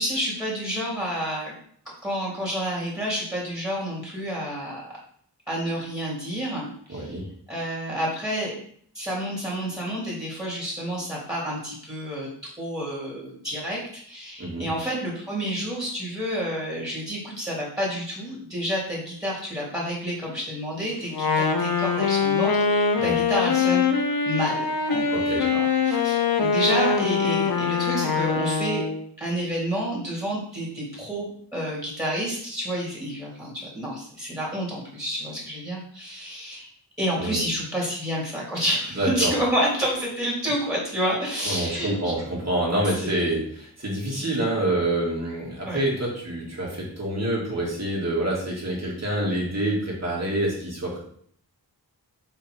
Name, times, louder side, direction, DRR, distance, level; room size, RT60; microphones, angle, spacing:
voice 1, 0.0-1.5 2.0-4.9 5.5-7.2 7.5-8.5 8.9-23.9 24.2-25.2 25.5-28.8 29.2-36.7 37.0-42.1 43.0-43.1 44.1-44.4 45.6-45.8, equal, 10° right, -6 dB, 2.7 m, -29 dB
voice 2, 6.9-7.2 14.4-14.7 23.0-23.1 25.1-25.4 37.2-37.4 39.0-39.3 41.5-51.0, right 1 dB, 40° right, -4 dB, 2.5 m, -27 dB
Wind instrument woodwind instrument, 21.1-29.0, left 5 dB, 60° left, 0.9 m, -23 dB
5.6 x 3.7 x 4.6 m, 0.62 s
wide cardioid pair, 50°, 41 cm